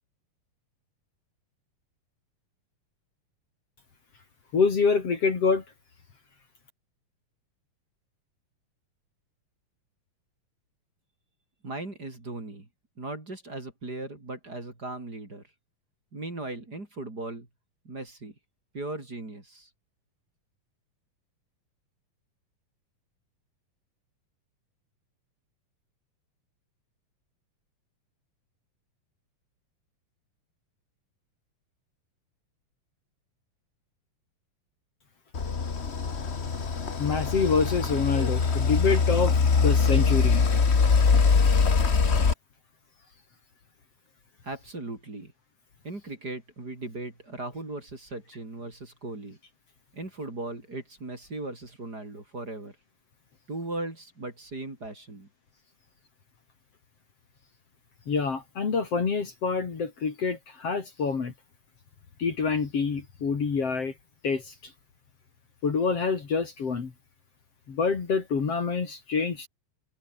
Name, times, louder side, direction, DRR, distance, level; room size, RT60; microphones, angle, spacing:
voice 1, 4.5-5.6 37.0-40.4 58.1-61.3 62.2-63.9 64.2-64.7 65.6-66.9 67.7-69.5, left 5 dB, 45° left, 3.7 m, -26 dB
voice 2, 11.6-12.7 13.0-15.4 16.1-17.5 17.8-18.3 18.7-19.7 44.4-45.3 45.8-49.4 49.9-52.7 53.5-55.3, right 2 dB, 25° right, 4.9 m, -38 dB
sound 1, 35.3-42.3, left 5 dB, 85° left, 0.5 m, -23 dB
omnidirectional pair, 3.9 m